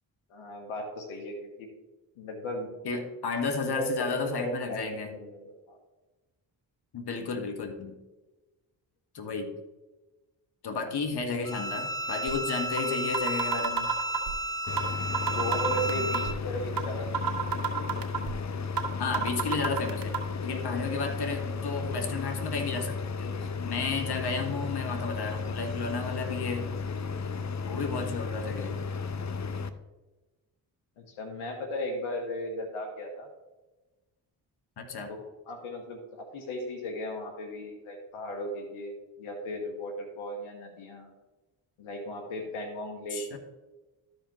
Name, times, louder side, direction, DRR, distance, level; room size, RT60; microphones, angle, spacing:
voice 1, 0.3-1.7 2.2-2.7 3.8-4.1 4.4-5.8 15.2-17.5 31.0-33.3 35.2-41.1 41.8-43.4, left 1 dB, 75° left, 4 dB, 1.5 m, -36 dB
voice 2, 2.8-5.1 6.9-8.0 9.1-9.5 10.6-13.9 19.0-20.1 20.4-26.7 27.7-28.8 34.8-35.1 43.1-43.4, left 4 dB, 50° left, 4 dB, 1.5 m, -32 dB
Bowed string instrument, 11.4-16.4, equal, 10° left, 0.4 m, -33 dB
sound 1, 12.3-12.4 12.8-12.9 13.1-14.3 14.8-14.9 15.1-16.3 16.8-16.9 17.1-18.3 18.8-18.9 19.1-20.2, right 7 dB, 45° right, 1.9 m, -29 dB
sound 2, 14.7-29.7, left 4 dB, 35° left, 0.8 m, -34 dB
13.0 x 5.1 x 3.0 m, 1.1 s
hypercardioid pair, 40°, 50 cm